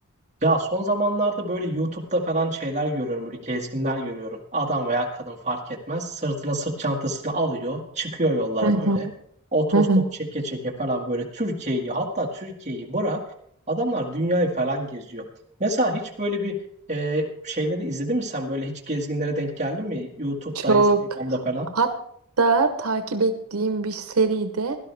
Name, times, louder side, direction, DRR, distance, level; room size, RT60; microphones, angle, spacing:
voice 1, 0.4-9.1 9.5-10.0 10.3-13.2 13.7-15.3 15.6-16.6 16.9-20.8 21.1-21.7, right 1 dB, 30° right, 0 dB, 1.9 m, -26 dB
voice 2, 8.6-9.1 9.7-10.0 20.5-21.0 21.8-21.9 22.4-24.8, right 3 dB, 85° right, 8 dB, 1.0 m, -21 dB
17.0 x 12.0 x 3.4 m, 0.66 s
head